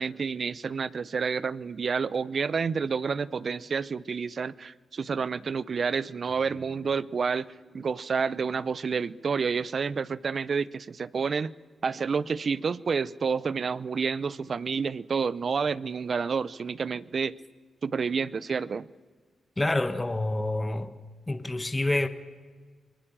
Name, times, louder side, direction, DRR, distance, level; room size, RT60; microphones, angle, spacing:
voice 1, 0.0-7.4 7.7-11.5 11.8-17.3 17.8-18.9, right 5 dB, 55° right, 0.6 m, -29 dB
sound 1, 6.3-10.1, right 3 dB, 80° right, 7.5 m, -58 dB
voice 2, 19.6-20.9 21.3-22.1, left 2 dB, 20° left, 1.4 m, -27 dB
25.0 x 19.0 x 8.9 m
cardioid pair, 75°, 0 cm